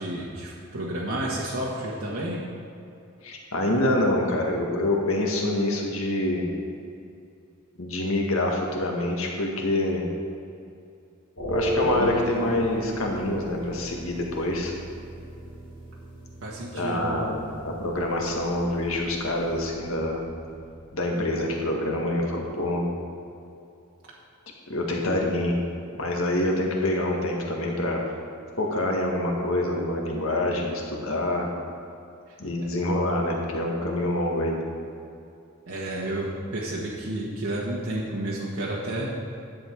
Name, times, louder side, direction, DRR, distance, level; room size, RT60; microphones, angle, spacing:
voice 1, 0.0-2.4 16.4-17.3 35.7-39.1, right 1 dB, 85° right, -5 dB, 1.4 m, -31 dB
voice 2, 3.2-6.4 7.8-10.0 11.5-14.7 16.7-20.2 20.9-22.9 24.7-25.6 26.0-28.0 28.6-31.5 32.4-34.6, left 1 dB, 85° left, 0 dB, 1.6 m, -26 dB
sound 1, 11.4-21.6, left 1 dB, 70° left, 2.6 m, -36 dB
sound 2, 11.8-18.6 18.9-19.0 19.4-19.5, right 1 dB, 20° left, 2.1 m, -41 dB
10.5 x 8.0 x 4.6 m, 2.6 s
head